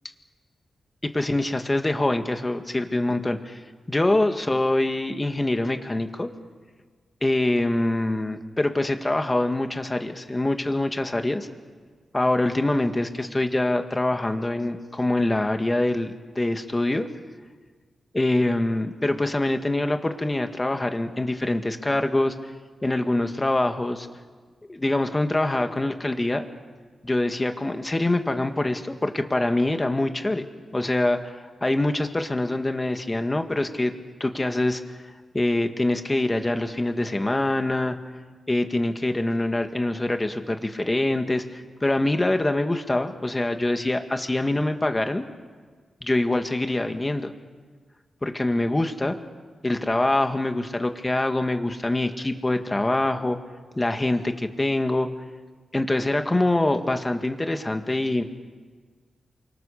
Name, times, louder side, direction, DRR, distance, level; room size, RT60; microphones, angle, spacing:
voice 1, 1.1-3.6 3.9-6.3 7.2-11.5 12.1-17.1 18.1-22.3 22.8-24.1 24.7-26.5 27.0-30.4 30.7-33.9 34.2-34.8 35.3-38.0 38.5-45.2 46.0-47.3 48.2-49.2 49.6-53.4 53.8-55.1 55.7-58.2, left 2 dB, 20° left, 6 dB, 2.1 m, -24 dB
29.0 x 25.0 x 6.8 m, 1.5 s
cardioid pair, 70°, 0 cm